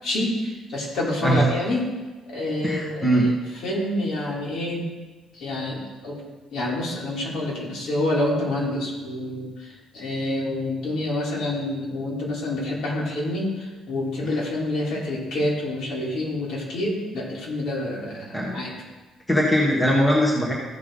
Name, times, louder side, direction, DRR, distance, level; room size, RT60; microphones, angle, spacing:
voice 1, 0.0-1.8 2.3-3.3 3.6-4.8 5.3-6.2 6.5-18.7, left 1 dB, 65° left, -4 dB, 3.3 m, -27 dB
voice 2, 2.6-3.3 18.3-18.6 19.3-20.5, equal, 10° left, -4 dB, 1.5 m, -20 dB
14.5 x 5.9 x 3.7 m, 1.2 s
cardioid pair, 155°, 0 cm